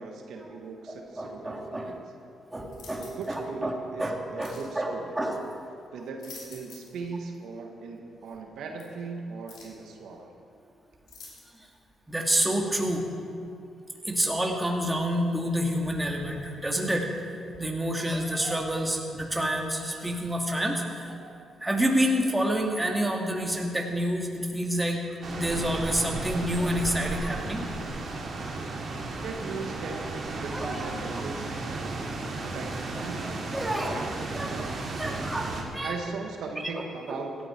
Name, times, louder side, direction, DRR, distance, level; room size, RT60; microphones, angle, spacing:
voice 1, 0.0-2.0 3.0-5.2 5.9-10.3 29.2-32.1 32.4-32.7 33.0-33.3 33.8-34.8 35.8-37.4, right 4 dB, 80° right, 2 dB, 1.6 m, -39 dB
voice 2, 0.9-1.9 2.5-5.7 11.5-11.7 12.1-13.1 14.1-17.1 17.6-21.3 21.6-27.7 29.9-30.0 30.5-30.9 32.3-32.5 32.9-34.0 34.3-34.7 35.0-36.0 36.7-36.8 37.1-37.2, equal, 10° right, 1 dB, 2.3 m, -29 dB
sound 1, 2.7-3.4 4.4-4.7 6.0-7.0 7.3-7.4 8.8-8.9 9.5-9.8 11.1-11.7 12.4-12.5, left 4 dB, 70° left, 4.0 m, -48 dB
sound 2, 25.2-35.6, right 3 dB, 55° right, 2.5 m, -34 dB
16.5 x 13.0 x 4.5 m, 2.4 s
cardioid pair, 70°, 0 cm